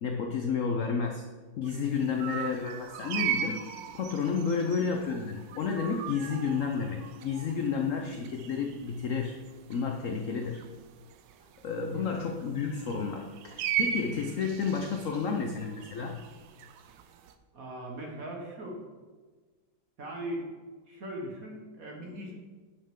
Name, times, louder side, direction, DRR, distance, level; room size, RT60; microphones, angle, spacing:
voice 1, 0.0-1.2 1.6-3.6 3.9-9.3 9.7-10.6 11.6-16.2, left 5 dB, 85° left, 3 dB, 0.7 m, -31 dB
sound 1, 1.6-17.3, right 9 dB, 75° right, 1.2 m, -39 dB
voice 2, 17.5-18.8 20.0-20.5 20.9-22.3, right 1 dB, 50° right, -1 dB, 1.7 m, -39 dB
10.0 x 5.5 x 3.7 m, 1.4 s
omnidirectional pair, 2.1 m